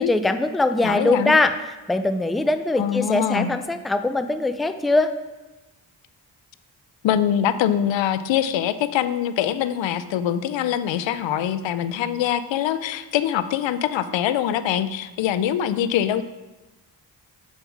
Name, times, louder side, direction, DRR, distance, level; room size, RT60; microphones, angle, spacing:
voice 1, 0.0-1.5 1.9-5.1, left 2 dB, ahead, 9 dB, 0.4 m, -21 dB
voice 2, 0.8-1.3 2.8-3.5 7.0-16.2, left 10 dB, 90° left, 13 dB, 0.5 m, -23 dB
7.3 x 5.3 x 4.7 m, 1.1 s
cardioid pair, 65°, 44 cm